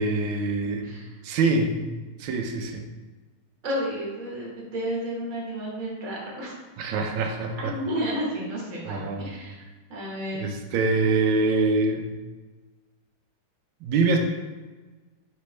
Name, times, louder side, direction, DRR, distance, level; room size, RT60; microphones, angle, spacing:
voice 1, 0.0-0.9 1.2-1.8 2.2-2.8 6.8-7.7 8.9-9.3 10.3-12.1 13.8-14.2, right 3 dB, 75° right, 4 dB, 1.4 m, -24 dB
voice 2, 0.8-1.1 3.6-6.5 7.6-9.6 9.9-10.5, equal, 40° right, -4 dB, 1.3 m, -31 dB
5.0 x 3.3 x 3.1 m, 1.3 s
omnidirectional pair, 2.3 m